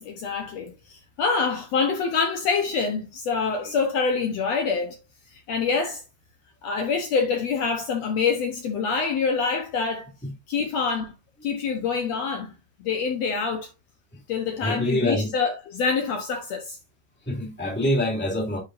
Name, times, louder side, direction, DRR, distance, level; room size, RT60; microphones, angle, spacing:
voice 1, 0.0-5.0 5.5-6.0 6.6-10.1 10.5-11.1 11.4-12.5 12.8-13.7 14.3-16.8, left 5 dB, 60° left, 2.1 m, -26 dB
voice 2, 14.6-15.3 17.3-18.6, left 1 dB, 5° left, 2.0 m, -25 dB
10.0 x 5.7 x 2.6 m
omnidirectional pair, 3.7 m